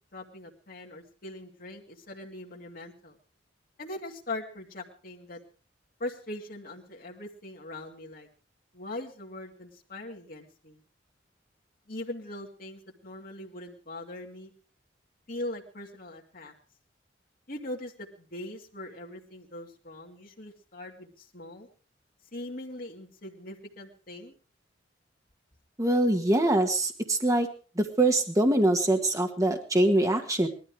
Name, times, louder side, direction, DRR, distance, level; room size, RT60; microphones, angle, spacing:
voice 1, 0.1-3.2 3.8-5.4 6.0-8.3 8.7-10.8 11.9-14.5 15.3-16.5 17.5-21.7 22.3-24.3, left 1 dB, 50° left, -1 dB, 2.6 m, -41 dB
voice 2, 25.8-27.5 27.7-30.5, right 1 dB, 20° right, 4 dB, 1.8 m, -24 dB
19.5 x 13.0 x 4.9 m, 0.36 s
head